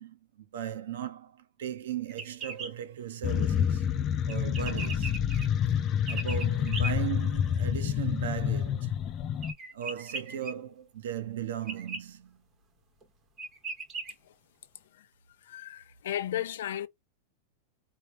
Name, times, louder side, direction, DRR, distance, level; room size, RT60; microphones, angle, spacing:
voice 1, 0.0-3.9 4.3-5.1 5.6-5.7 6.1-8.9 9.7-12.4, right 9 dB, 85° right, 0.8 m, -37 dB
sound 1, 2.1-2.7 4.3-5.5 6.1-6.9 9.4-10.5 11.7-12.0 13.0-13.1 13.4-14.1, right 3 dB, 20° right, 0.9 m, -38 dB
sound 2, 3.2-9.5, left 9 dB, 25° left, 0.4 m, -28 dB
voice 2, 15.5-16.9, left 11 dB, 80° left, 0.7 m, -34 dB
4.5 x 2.0 x 3.2 m
supercardioid pair, 175°, 0 cm